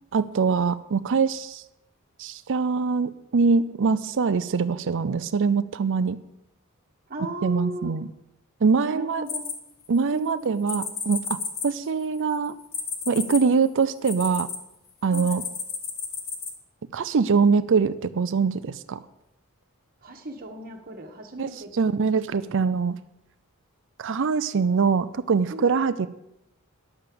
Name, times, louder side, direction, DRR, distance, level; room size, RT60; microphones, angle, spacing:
voice 1, 0.1-1.6 2.2-6.2 7.4-8.1 8.6-9.2 9.9-12.5 13.1-14.5 15.0-15.4 16.9-19.0 21.4-21.5 21.8-23.0 24.0-26.1, right 5 dB, 60° right, 13 dB, 0.5 m, -23 dB
voice 2, 7.1-8.0 8.8-9.6 10.1-10.6 15.0-15.5 20.0-22.1 25.5-25.9, equal, 40° right, 2 dB, 1.5 m, -37 dB
sound 1, 9.3-10.1 10.7-14.6 15.1-16.5, left 6 dB, 45° left, 1.7 m, -32 dB
10.5 x 7.7 x 6.9 m, 0.84 s
head